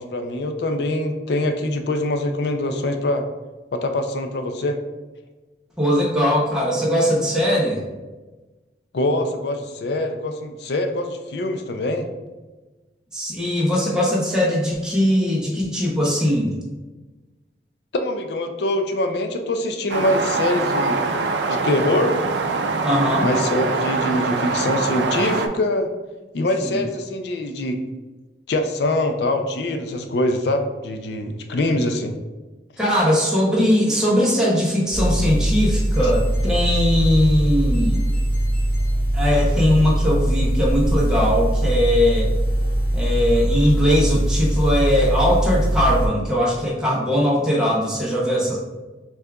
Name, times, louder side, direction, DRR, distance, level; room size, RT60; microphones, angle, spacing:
voice 1, 0.0-3.2 3.7-4.8 8.9-12.1 17.9-21.0 21.5-22.2 23.2-25.9 26.3-27.8 28.5-32.1, left 1 dB, 70° left, 6 dB, 0.4 m, -24 dB
voice 2, 5.8-7.8 13.1-16.5 22.8-23.3 26.6-26.8 32.8-38.0 39.1-42.3 42.9-48.6, equal, 5° right, -6 dB, 0.7 m, -20 dB
sound 1, 19.9-25.5, right 3 dB, 80° right, 0.4 m, -23 dB
sound 2, 34.9-46.1, right 1 dB, 50° left, 0.8 m, -21 dB
6.4 x 2.4 x 2.3 m, 1.2 s
head